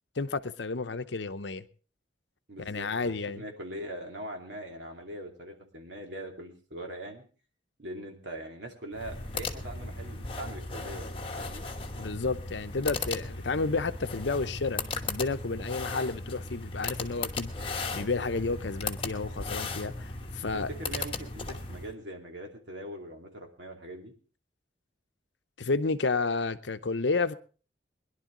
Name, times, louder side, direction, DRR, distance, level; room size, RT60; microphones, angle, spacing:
voice 1, 0.2-1.6 2.6-3.4 12.0-17.5 17.9-20.7 25.6-27.3, left 3 dB, 65° left, 0.7 m, -31 dB
voice 2, 2.5-7.2 7.8-11.7 15.6-15.7 20.5-24.1, right 1 dB, 70° right, 2.7 m, -42 dB
sound 1, 8.9-21.9, left 3 dB, 25° left, 1.2 m, -36 dB
21.5 x 11.0 x 3.8 m
head